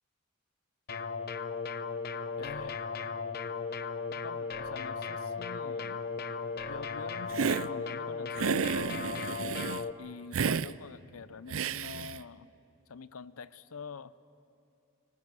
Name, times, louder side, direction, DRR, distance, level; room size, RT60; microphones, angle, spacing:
sound 1, 0.9-9.9, left 5 dB, 45° left, 0.8 m, -36 dB
voice 1, 2.4-2.9 4.2-6.0 6.7-8.6 10.0-12.5 12.9-14.1, left 5 dB, 90° left, 16 dB, 0.7 m, -45 dB
Hiss, 7.3-7.7 8.4-9.8 10.3-10.7 11.5-12.2, right 6 dB, 70° right, 0.5 m, -31 dB
24.5 x 17.5 x 9.7 m, 2.7 s
head